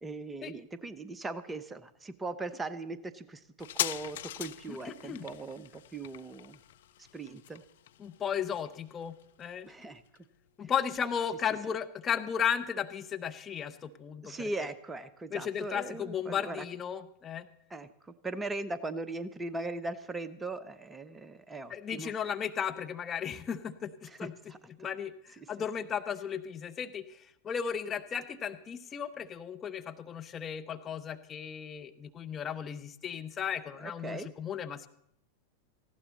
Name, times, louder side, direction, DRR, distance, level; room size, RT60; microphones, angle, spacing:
voice 1, 0.0-6.6 7.1-7.6 9.7-10.0 10.6-10.7 14.2-16.6 17.7-22.1 24.1-24.9 25.4-25.5 33.8-34.3, right 2 dB, 10° right, 14 dB, 0.8 m, -39 dB
sound 1, 3.6-10.7 11.0-11.1, left 12 dB, 60° left, 0.5 m, -41 dB
voice 2, 4.7-5.2 8.0-9.7 10.6-14.5 15.3-17.5 21.7-24.3 24.8-34.9, left 8 dB, 25° left, 7 dB, 0.8 m, -35 dB
18.5 x 15.5 x 4.1 m, 0.73 s
figure-of-eight pair, 90°, 0 cm